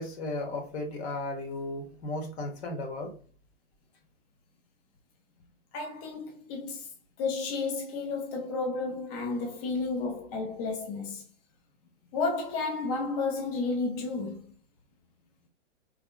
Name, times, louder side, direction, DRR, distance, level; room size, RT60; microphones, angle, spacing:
voice 1, 0.0-3.1, left 2 dB, 60° left, 1.3 m, -35 dB
voice 2, 5.7-6.9 7.2-11.2 12.1-14.5, left 3 dB, 30° left, 0.6 m, -32 dB
3.6 x 3.3 x 2.2 m
hypercardioid pair, 135°, 37 cm